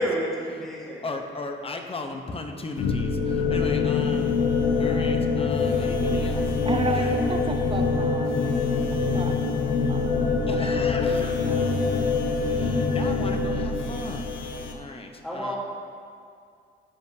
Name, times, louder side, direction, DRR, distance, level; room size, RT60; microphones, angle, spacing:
voice 1, 0.0-1.0 15.2-15.6, equal, ahead, -5 dB, 1.6 m, -29 dB
voice 2, 1.0-4.4 4.8-6.6 6.9-7.2 10.5-11.4 12.3-14.3 14.7-15.6, left 3 dB, 30° left, 4 dB, 0.7 m, -36 dB
sound 1, 2.8-14.7, left 4 dB, 80° left, 0.8 m, -24 dB
voice 3, 6.7-8.4 9.1-9.4 9.9-10.2 10.5-10.8 11.0-11.6, right 3 dB, 25° right, 4 dB, 0.6 m, -32 dB
13.0 x 5.2 x 2.7 m, 2.3 s
cardioid pair, 90°, 20 cm